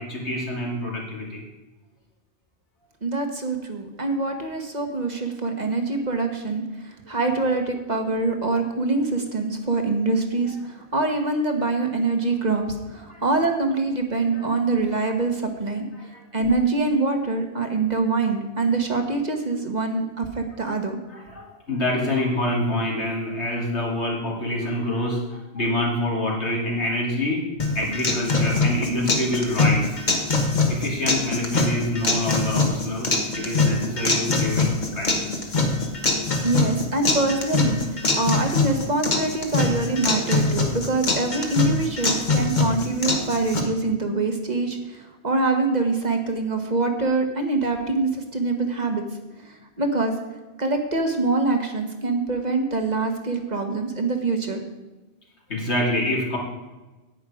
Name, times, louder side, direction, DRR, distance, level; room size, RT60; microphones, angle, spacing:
voice 1, 0.0-1.4 13.1-13.2 14.3-14.5 15.9-16.2 21.1-27.4 27.7-30.1 30.7-33.1 33.3-35.5 35.8-36.4 55.5-56.4, left 1 dB, 85° left, -2 dB, 3.1 m, -27 dB
voice 2, 3.0-15.8 16.3-21.0 36.4-49.0 49.4-50.1 50.6-54.6, right 3 dB, 40° right, 4 dB, 1.3 m, -24 dB
sound 1, 27.6-43.6, left 3 dB, 45° left, 1.4 m, -23 dB
9.8 x 9.2 x 5.0 m, 1.1 s
omnidirectional pair, 1.1 m